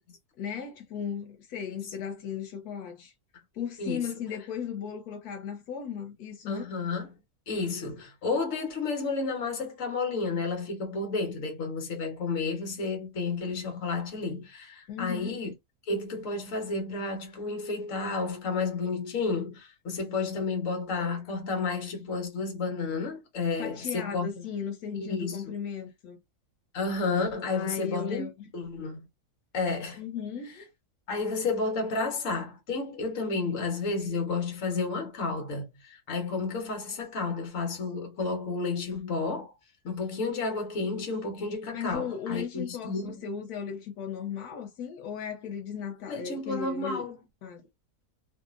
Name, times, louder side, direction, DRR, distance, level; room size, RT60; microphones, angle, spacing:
voice 1, 0.4-3.1 3.5-6.7 14.9-15.3 23.6-26.2 27.5-28.5 30.0-30.7 41.7-47.1 47.4-47.6, left 7 dB, 85° left, 1.2 m, -36 dB
voice 2, 6.5-7.1 7.5-15.5 15.9-24.3 24.9-25.4 26.7-28.3 28.5-29.0 29.5-30.0 31.1-39.5 39.8-43.2 46.1-47.1, left 4 dB, 60° left, 1.3 m, -31 dB
2.8 x 2.5 x 2.4 m
omnidirectional pair, 1.6 m